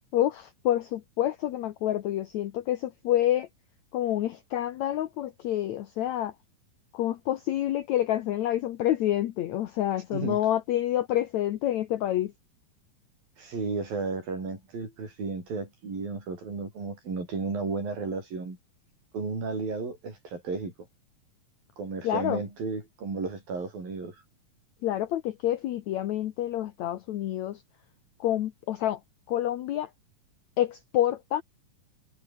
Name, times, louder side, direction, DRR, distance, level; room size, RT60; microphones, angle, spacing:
voice 1, 0.1-3.5 3.9-6.4 6.9-12.3 22.0-22.4 24.8-27.6 28.2-29.0 29.3-29.9 30.6-31.4, left 12 dB, 65° left, 2.0 m, -28 dB
voice 2, 13.4-18.6 19.1-20.7 21.8-24.2, right 4 dB, 80° right, 9.2 m, -33 dB
omnidirectional pair, 4.0 m